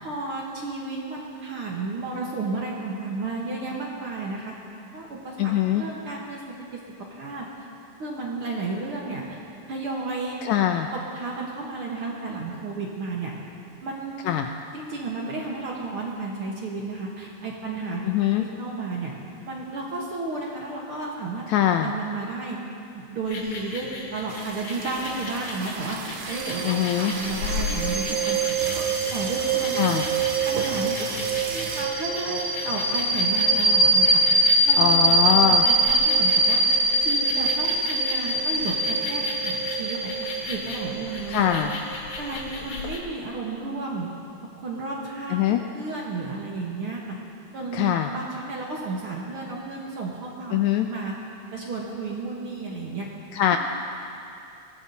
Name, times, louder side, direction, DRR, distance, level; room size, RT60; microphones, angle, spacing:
voice 1, 0.0-4.5 4.9-6.4 6.7-6.8 7.2-7.5 8.0-9.4 9.7-10.4 10.9-13.3 13.8-14.3 14.7-19.1 19.4-21.5 21.8-22.6 22.9-28.6 29.1-30.1 30.4-31.1 31.4-34.2 34.6-36.6 37.0-40.1 40.5-41.7 42.2-44.1 44.6-47.2 47.5-50.6 50.9-51.1 51.5-53.1, right 3 dB, 55° right, -3 dB, 1.7 m, -32 dB
voice 2, 5.4-5.8 10.4-10.9 14.3-14.5 18.1-18.4 21.5-21.9 26.6-27.1 29.7-30.1 34.8-35.7 41.3-41.7 45.3-45.6 47.7-48.1 50.5-50.9 53.3-53.6, left 11 dB, 80° left, 5 dB, 1.7 m, -22 dB
sound 1, 23.3-43.0, left 3 dB, 55° left, 2.2 m, -37 dB
sound 2, 24.3-32.1 32.7-32.8 33.0-33.2 33.7-34.9, right 6 dB, 85° right, 2.5 m, -36 dB
sound 3, 26.3-42.6, right 2 dB, 35° right, 0.9 m, -23 dB
21.5 x 16.0 x 2.8 m, 2.6 s
omnidirectional pair, 3.7 m